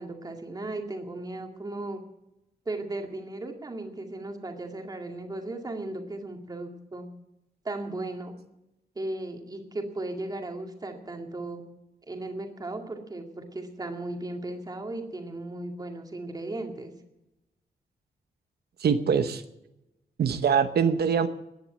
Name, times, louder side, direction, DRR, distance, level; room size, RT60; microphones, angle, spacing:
voice 1, 0.0-2.0 2.7-7.1 7.6-8.4 9.0-11.6 12.1-16.9, right 2 dB, 25° right, 3 dB, 2.2 m, -36 dB
voice 2, 18.8-19.4 20.2-21.3, right 7 dB, 85° right, 9 dB, 1.0 m, -23 dB
17.5 x 10.5 x 7.6 m, 0.90 s
wide cardioid pair, 175°, 16 cm